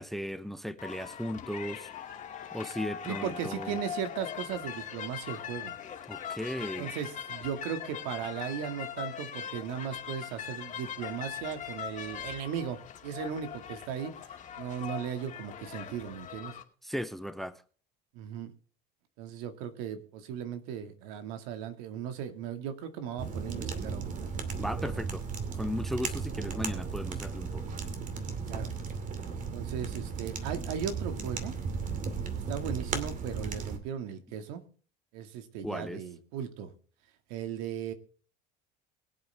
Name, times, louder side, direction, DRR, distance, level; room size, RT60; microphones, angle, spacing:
voice 1, 0.0-1.9 2.5-3.8 6.1-6.9 16.8-17.6 24.6-25.2 25.5-27.6 35.6-36.0, equal, ahead, 13 dB, 0.8 m, -36 dB
sound 1, 0.8-16.6, left 9 dB, 40° left, 2.4 m, -41 dB
voice 2, 3.1-5.8 6.6-14.2 14.6-16.6 18.1-18.5 19.2-24.1 24.5-24.6 28.5-28.7 29.5-31.6 32.5-34.6 35.1-36.7 37.3-37.9, right 8 dB, 85° right, 8 dB, 2.2 m, -37 dB
sound 2, 23.2-33.8, right 5 dB, 40° right, 2.5 m, -35 dB
22.5 x 8.4 x 3.5 m, 0.42 s
cardioid pair, 125°, 20 cm